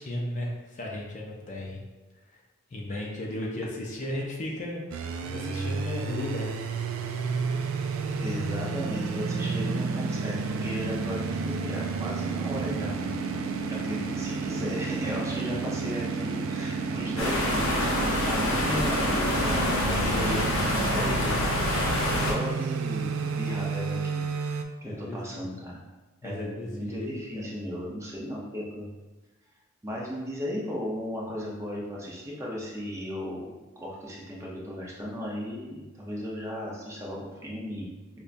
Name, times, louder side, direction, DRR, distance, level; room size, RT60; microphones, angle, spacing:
voice 1, 0.0-1.8 2.3-2.4 2.7-4.8 5.2-6.5 15.5-15.6 24.8-25.5 26.2-27.4, left 1 dB, 35° left, -2 dB, 0.4 m, -35 dB
sound 1, 4.9-24.6, right 4 dB, 70° right, 0.3 m, -31 dB
voice 2, 8.2-13.2 13.7-17.8 18.2-21.5 22.2-24.3 24.8-25.8 26.2-28.9 29.8-37.9, equal, 15° right, -4 dB, 0.6 m, -36 dB
sound 2, 17.2-22.3, left 1 dB, 70° left, 0.7 m, -27 dB
5.1 x 2.2 x 2.5 m, 1.2 s
head